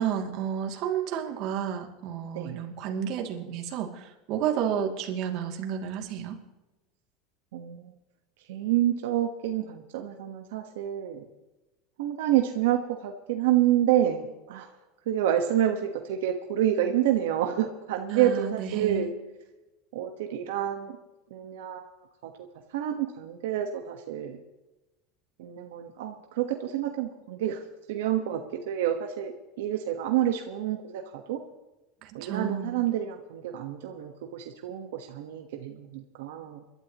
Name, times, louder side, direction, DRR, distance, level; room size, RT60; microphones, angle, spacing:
voice 1, 0.0-6.4 18.1-19.1 32.0-32.7, right 8 dB, 55° right, 2 dB, 2.6 m, -31 dB
voice 2, 7.5-7.9 8.5-11.3 12.0-14.7 15.1-19.1 19.9-21.0 21.3-21.9 22.2-22.3 22.7-24.4 25.4-27.6 27.9-28.4 28.7-31.4 32.1-36.6, right 11 dB, 85° right, 4 dB, 1.3 m, -28 dB
26.5 x 12.5 x 3.0 m, 1.1 s
supercardioid pair, 145°, 0 cm